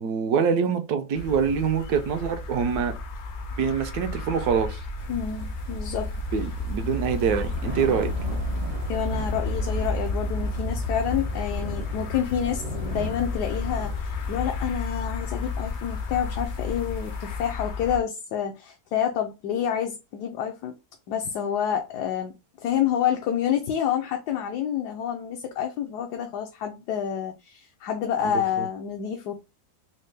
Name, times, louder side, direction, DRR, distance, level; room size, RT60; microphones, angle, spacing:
voice 1, 0.0-2.9 3.6-4.8 6.3-8.1, right 6 dB, 75° right, 1.1 m, -25 dB
sound 1, 1.2-18.0, left 3 dB, 65° left, 0.7 m, -31 dB
sound 2, 5.0-17.5, right 1 dB, 45° right, 0.5 m, -41 dB
voice 2, 5.1-6.1 8.9-20.7 21.1-22.3 22.6-29.4, left 9 dB, 80° left, 1.2 m, -28 dB
4.2 x 2.1 x 3.2 m
omnidirectional pair, 1.7 m